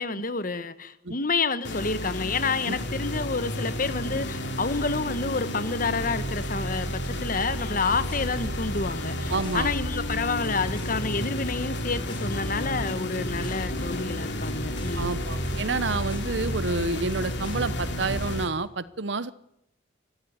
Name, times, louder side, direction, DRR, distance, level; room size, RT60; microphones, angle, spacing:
voice 1, 0.0-15.2, left 4 dB, 45° left, 1.3 m, -29 dB
sound 1, 1.7-18.5, left 1 dB, 60° left, 2.8 m, -31 dB
sound 2, 7.4-18.6, equal, 25° left, 4.4 m, -40 dB
voice 2, 9.3-9.7 15.0-19.3, right 3 dB, 60° right, 0.9 m, -29 dB
22.0 x 15.0 x 9.7 m
head